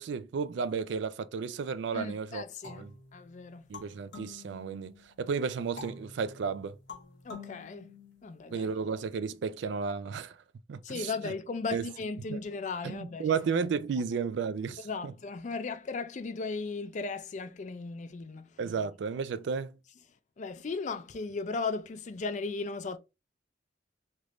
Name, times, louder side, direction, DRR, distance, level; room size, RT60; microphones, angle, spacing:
voice 1, 0.0-2.9 3.7-6.8 8.5-10.4 10.7-11.3 11.7-11.9 12.3-12.4 12.8-15.1 18.6-19.8, right 5 dB, 70° right, 0.3 m, -33 dB
voice 2, 1.9-3.7 7.2-7.9 8.2-8.7 10.8-13.3 14.8-18.6 20.4-23.0, left 4 dB, 40° left, 0.4 m, -36 dB
sound 1, 2.6-5.1 5.8-8.6, left 4 dB, 70° left, 1.2 m, -48 dB
3.4 x 2.4 x 3.0 m
head